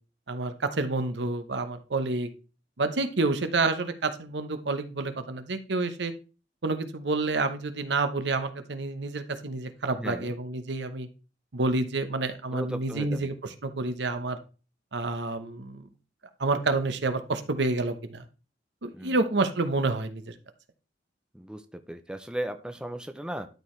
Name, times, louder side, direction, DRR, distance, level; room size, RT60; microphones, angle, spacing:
voice 1, 0.3-2.3 2.8-6.1 6.6-11.1 11.5-13.3 13.6-14.4 14.9-15.9 16.4-18.2 18.8-20.3, right 3 dB, 65° right, 9 dB, 0.9 m, -28 dB
voice 2, 9.9-10.3 12.5-13.3 18.9-19.2 21.3-23.5, right 1 dB, 5° right, 8 dB, 0.5 m, -36 dB
12.0 x 4.6 x 3.2 m, 0.34 s
head